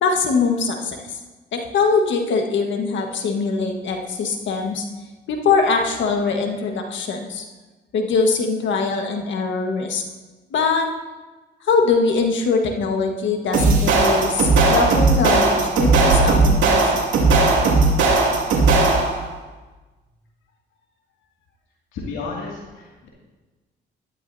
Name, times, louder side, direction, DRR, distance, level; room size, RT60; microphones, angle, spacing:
voice 1, 0.0-1.2 1.5-4.8 5.3-7.4 7.9-10.0 10.5-10.9 11.6-17.0, left 4 dB, 70° left, 3 dB, 1.5 m, -22 dB
sound 1, 13.5-19.2, right 3 dB, 75° right, 2.4 m, -17 dB
voice 2, 21.9-23.1, left 4 dB, 90° left, -4 dB, 2.3 m, -32 dB
14.0 x 12.5 x 2.7 m, 1.2 s
cardioid pair, 90°, 20 cm